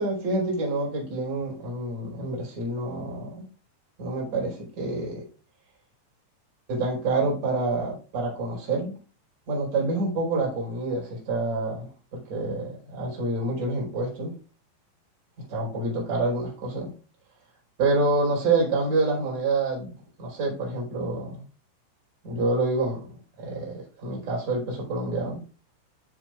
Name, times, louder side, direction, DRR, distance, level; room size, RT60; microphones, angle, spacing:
voice 1, 0.0-3.4 4.0-5.2 6.7-8.9 9.5-14.3 15.4-16.9 17.8-19.9 20.2-21.4 22.2-25.4, right 2 dB, 40° right, -3 dB, 5.6 m, -27 dB
13.0 x 7.0 x 2.5 m, 0.37 s
omnidirectional pair, 5.6 m